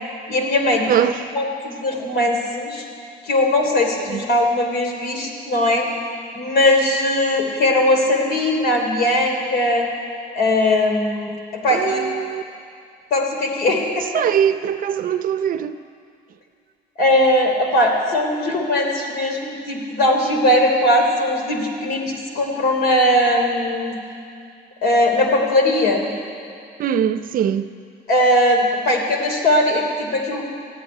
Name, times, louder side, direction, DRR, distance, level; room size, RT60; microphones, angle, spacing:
voice 1, 0.3-1.0 1.3-2.8 3.2-5.9 6.3-9.9 10.3-12.0 13.1-14.2 17.0-24.0 24.8-26.1 28.1-30.5, left 1 dB, 65° left, 3.1 m, -19 dB
voice 2, 0.9-1.2 4.1-4.2 11.7-12.4 14.1-15.7 26.8-27.7, right 9 dB, 55° right, 0.6 m, -21 dB
14.0 x 9.1 x 9.7 m
cardioid pair, 110°, 17 cm